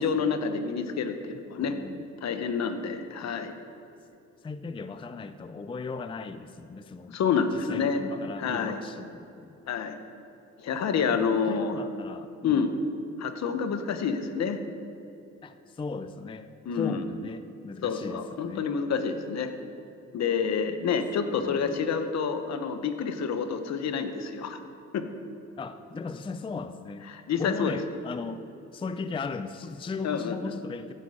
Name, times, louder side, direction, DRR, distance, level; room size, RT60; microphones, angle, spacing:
voice 1, 0.0-1.8 2.2-3.5 7.1-8.0 8.4-8.8 9.7-9.9 10.6-11.7 12.4-12.7 13.2-14.6 16.7-17.0 17.8-19.5 20.1-24.6 24.9-25.1 27.1-27.7 30.0-30.3, left 6 dB, 60° left, 8 dB, 1.1 m, -28 dB
voice 2, 1.6-2.0 4.4-7.2 7.5-9.6 11.1-12.7 15.4-18.7 21.4-21.8 25.6-27.1 27.4-28.4 28.7-30.9, left 4 dB, 15° left, 10 dB, 0.4 m, -37 dB
15.0 x 8.6 x 5.0 m, 2.7 s
cardioid pair, 95°, 30 cm